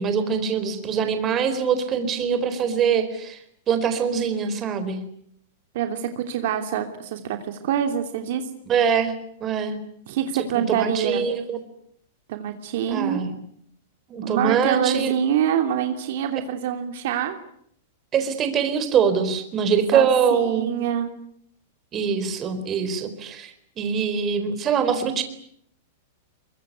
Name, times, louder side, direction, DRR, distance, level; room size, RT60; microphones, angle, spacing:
voice 1, 0.0-3.4 3.7-5.0 8.7-9.1 9.4-9.8 10.6-11.6 12.9-13.4 14.1-15.1 18.1-20.7 21.9-25.2, right 7 dB, 25° right, 9 dB, 4.4 m, -23 dB
voice 2, 5.7-8.4 10.1-11.2 12.3-13.2 14.2-17.4 19.9-21.1, right 9 dB, 60° right, 6 dB, 2.9 m, -25 dB
24.0 x 23.0 x 9.5 m, 0.68 s
supercardioid pair, 150°, 0 cm